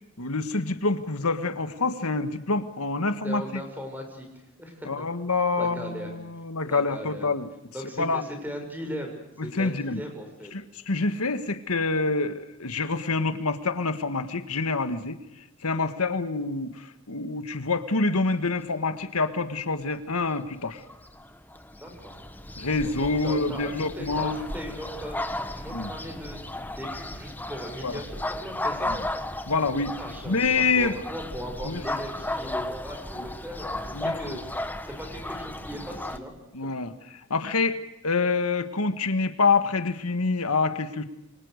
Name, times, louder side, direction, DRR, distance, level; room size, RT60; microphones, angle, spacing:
voice 1, 0.2-3.4 4.9-7.5 8.0-8.2 9.5-10.0 10.5-15.2 15.6-20.8 22.6-24.5 25.7-25.9 27.8-28.0 28.8-29.0 29.5-30.0 30.2-31.0 31.6-31.8 33.9-34.4 36.5-41.0, left 3 dB, 80° left, 9 dB, 1.7 m, -27 dB
voice 2, 3.2-4.9 5.6-6.1 6.6-7.3 7.7-9.1 9.5-10.5 21.8-22.1 22.8-25.2 25.6-28.9 30.0-36.3, equal, 10° right, 3 dB, 6.7 m, -38 dB
sound 1, 20.8-36.2, left 1 dB, 10° left, 1.3 m, -35 dB
28.0 x 25.5 x 6.7 m, 0.88 s
head